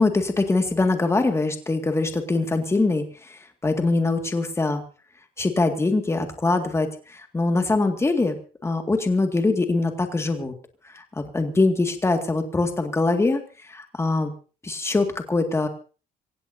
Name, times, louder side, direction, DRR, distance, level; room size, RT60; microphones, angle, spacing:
voice 1, 0.0-4.8 5.4-8.4 8.6-10.5 10.8-14.3 14.6-15.7, left 3 dB, 15° left, 5 dB, 2.0 m, -23 dB
26.5 x 16.5 x 2.7 m, 0.36 s
cardioid pair, 110°, 17 cm